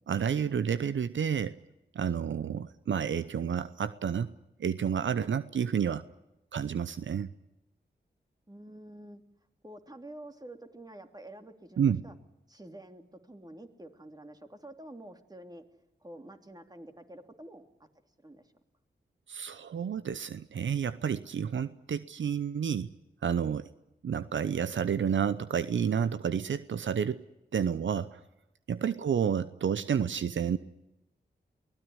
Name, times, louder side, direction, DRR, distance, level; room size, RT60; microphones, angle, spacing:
voice 1, 0.1-1.5 1.9-4.3 4.6-6.0 6.5-7.3 11.8-12.0 19.3-22.9 23.2-23.7 24.0-27.2 27.5-28.2 28.7-30.6, right 7 dB, 75° right, 14 dB, 0.8 m, -30 dB
voice 2, 8.5-9.2 9.6-12.1 12.5-15.6 16.0-17.9 18.2-18.5, right 1 dB, 20° right, 5 dB, 3.2 m, -48 dB
23.0 x 17.0 x 9.9 m, 0.91 s
cardioid pair, 40°, 19 cm